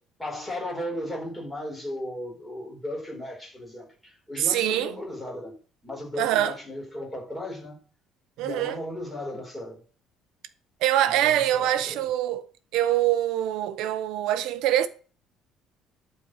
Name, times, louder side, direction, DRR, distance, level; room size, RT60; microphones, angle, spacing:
voice 1, 0.2-5.5 5.8-7.8 8.4-9.8 11.1-12.1, left 1 dB, 10° left, 4.4 m, -36 dB
voice 2, 4.4-5.0 6.2-6.5 8.4-8.8 10.8-12.5 12.7-14.9, right 12 dB, 70° right, 1.0 m, -24 dB
11.5 x 4.7 x 7.9 m
cardioid pair, 160°, 0 cm